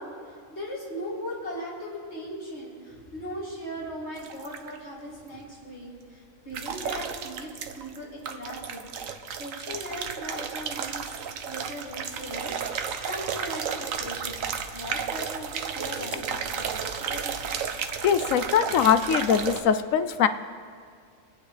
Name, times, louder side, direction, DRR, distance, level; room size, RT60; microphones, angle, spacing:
voice 1, 0.0-8.9 9.3-11.1 11.4-17.5, equal, 55° left, -5 dB, 3.1 m, -38 dB
sound 1, 4.2-4.8 6.5-8.0 8.2-19.6, right 7 dB, 80° right, 1.2 m, -33 dB
voice 2, 18.0-20.3, left 8 dB, 80° left, 11 dB, 1.0 m, -22 dB
23.0 x 9.2 x 3.3 m, 2.2 s
omnidirectional pair, 1.4 m